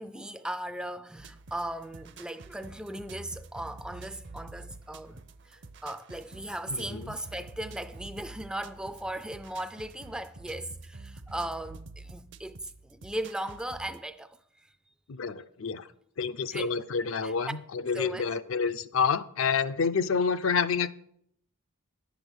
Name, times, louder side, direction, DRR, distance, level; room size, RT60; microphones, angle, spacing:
voice 1, 0.0-14.7 16.5-16.7 17.2-17.3 17.9-18.3, right 1 dB, 5° right, 0.3 m, -38 dB
sound 1, 1.2-14.0, right 3 dB, 55° right, 0.6 m, -47 dB
voice 2, 6.7-7.1 15.1-15.9 16.2-20.9, left 5 dB, 65° left, 0.5 m, -28 dB
10.5 x 7.0 x 6.3 m
head